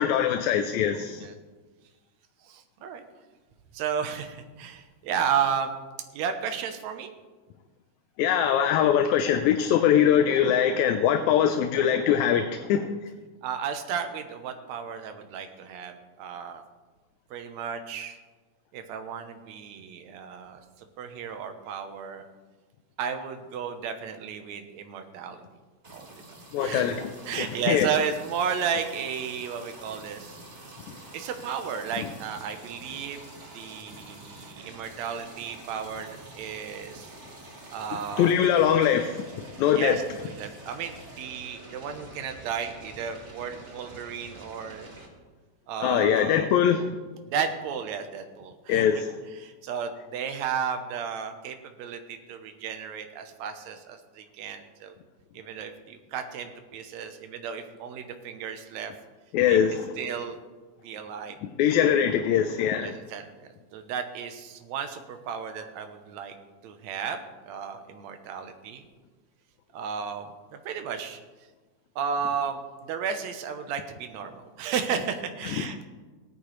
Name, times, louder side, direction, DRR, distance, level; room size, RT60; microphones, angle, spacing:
voice 1, 0.0-1.3 8.2-12.9 26.5-27.9 38.2-39.3 39.6-40.0 45.8-46.9 48.7-49.2 59.3-59.9 61.4-63.0 75.6-75.8, left 9 dB, 80° left, 7 dB, 1.9 m, -22 dB
voice 2, 2.4-3.0 3.7-5.7 6.1-7.1 13.4-16.6 17.3-18.2 18.7-22.3 23.0-25.4 25.9-26.2 26.6-26.9 27.3-30.4 31.1-33.2 33.5-37.2 37.7-38.3 39.7-44.9 45.7-46.5 47.3-48.9 49.4-55.0 55.3-58.9 59.5-59.6 60.0-60.4 60.8-61.4 62.8-66.4 66.6-68.8 69.7-71.2 72.0-75.8, right 7 dB, 75° right, 7 dB, 2.1 m, -33 dB
sound 1, 25.8-45.1, right 2 dB, 30° right, 1.4 m, -47 dB
17.0 x 10.0 x 3.2 m, 1.3 s
omnidirectional pair, 3.4 m